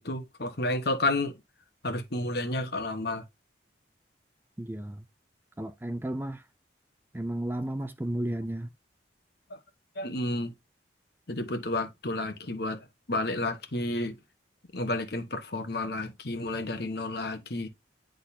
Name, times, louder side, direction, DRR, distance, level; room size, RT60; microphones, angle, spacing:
voice 1, 0.0-1.3 1.8-3.2 9.5-9.6 10.0-10.5 11.3-12.8 13.1-14.2 14.7-17.7, left 2 dB, 60° left, 1.3 m, -31 dB
voice 2, 4.6-5.0 5.6-6.4 7.1-8.7, right 1 dB, 10° right, 0.4 m, -33 dB
10.5 x 3.8 x 2.8 m
head